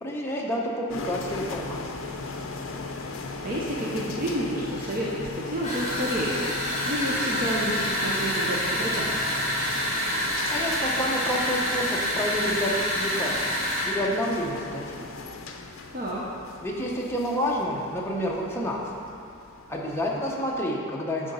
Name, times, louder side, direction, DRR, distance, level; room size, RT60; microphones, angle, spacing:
voice 1, 0.0-1.8 10.5-13.3 13.8-15.0 16.6-18.8 19.7-21.3, equal, 10° left, -3 dB, 0.8 m, -29 dB
sound 1, 0.9-20.6, left 3 dB, 65° left, 0.6 m, -38 dB
voice 2, 3.4-9.3 15.9-16.2, right 1 dB, 40° right, -5 dB, 0.8 m, -30 dB
sound 2, 5.6-14.0, equal, 30° left, 1.5 m, -27 dB
8.8 x 3.8 x 5.4 m, 2.4 s
head